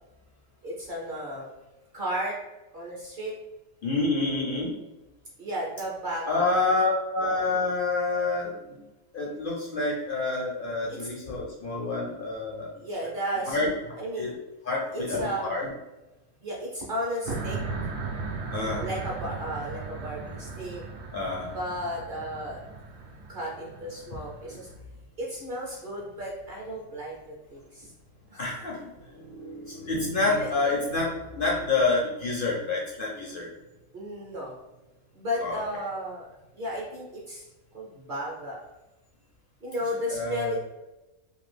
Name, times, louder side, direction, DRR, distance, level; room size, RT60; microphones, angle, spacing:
voice 1, 0.6-1.5 1.9-2.4 2.7-3.3 5.4-6.5 10.9-11.1 12.7-14.3 14.9-15.6 16.4-17.6 18.6-20.8 21.5-22.6 23.3-24.7 25.2-27.1 27.5-27.9 28.3-28.5 30.3-30.5 33.9-34.5 35.1-36.3 36.5-37.5 37.7-38.6 39.6-40.6, equal, 50° right, -3 dB, 0.7 m, -34 dB
voice 2, 3.8-4.8 6.3-8.8 9.1-12.7 13.5-13.7 14.2-14.3 14.6-15.7 18.5-18.8 21.1-21.5 28.4-28.8 29.1-33.5 35.4-35.6 40.1-40.6, left 3 dB, 60° left, -3 dB, 0.5 m, -28 dB
sound 1, 17.2-24.7, right 4 dB, 70° right, 0.9 m, -37 dB
2.6 x 2.4 x 3.2 m, 1.0 s
omnidirectional pair, 1.5 m